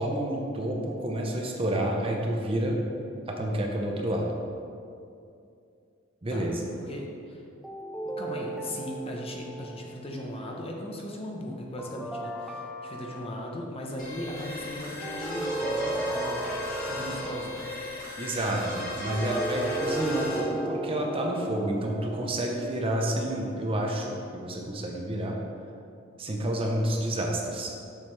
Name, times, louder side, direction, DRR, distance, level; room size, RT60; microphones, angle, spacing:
voice 1, 0.0-2.8 3.3-4.3 6.2-6.5 17.0-17.1 18.2-25.4 26.2-27.7, right 1 dB, 30° right, 0 dB, 0.7 m, -29 dB
voice 2, 6.8-7.4 8.2-16.4 16.9-17.6, left 1 dB, 30° left, -1 dB, 0.8 m, -38 dB
sound 1, 7.6-10.1 11.8-13.6 15.0-17.7 19.1-23.6, right 1 dB, ahead, 0.4 m, -35 dB
sound 2, 14.0-20.4, left 1 dB, 45° left, 1.7 m, -37 dB
7.3 x 6.2 x 3.3 m, 2.5 s
head